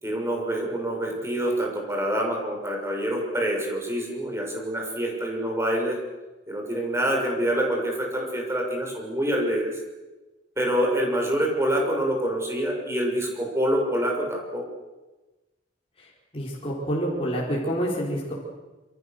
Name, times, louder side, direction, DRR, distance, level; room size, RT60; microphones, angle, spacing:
voice 1, 0.0-6.0 6.5-9.7 10.6-14.6, right 1 dB, 15° right, 0 dB, 6.4 m, -26 dB
voice 2, 16.3-18.3, equal, 30° left, -4 dB, 5.0 m, -27 dB
27.5 x 26.5 x 6.8 m, 1.1 s
head